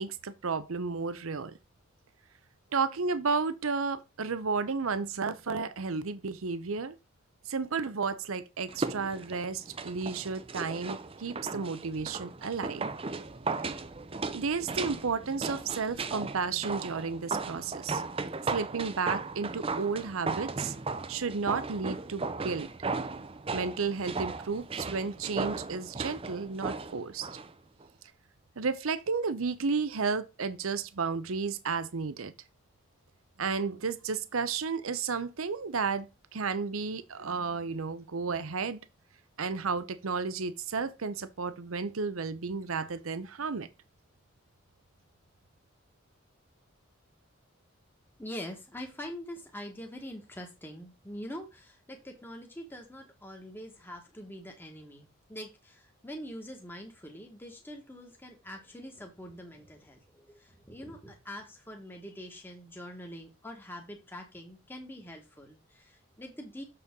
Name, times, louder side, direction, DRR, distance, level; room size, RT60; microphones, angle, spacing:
voice 1, 0.0-1.6 2.7-7.0 7.5-12.9 14.3-18.0 18.4-20.7 21.1-22.7 23.5-27.4 28.6-32.3 33.4-36.1 36.3-38.8 39.4-43.7, right 5 dB, 80° right, 0.7 m, -32 dB
sound 1, 8.7-27.5 27.8-27.9, right 3 dB, 25° right, 0.5 m, -36 dB
voice 2, 48.2-66.6, equal, 10° left, 1.4 m, -44 dB
6.9 x 6.8 x 3.7 m
head